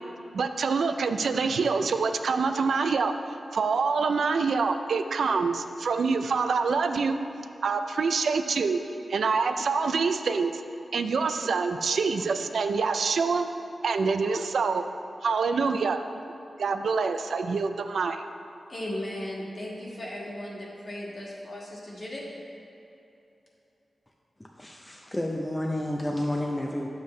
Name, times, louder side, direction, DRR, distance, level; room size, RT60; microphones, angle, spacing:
voice 1, 0.3-3.1 3.5-7.2 7.6-8.8 9.1-10.6 10.9-13.5 13.8-14.8 15.2-16.0 16.6-18.2, right 4 dB, 85° right, 8 dB, 0.4 m, -26 dB
voice 2, 18.7-22.3, left 1 dB, 45° left, -4 dB, 1.8 m, -36 dB
voice 3, 24.6-26.9, left 1 dB, 15° left, 0 dB, 0.6 m, -30 dB
8.9 x 7.3 x 3.2 m, 2.9 s
wide cardioid pair, 80°, 0 cm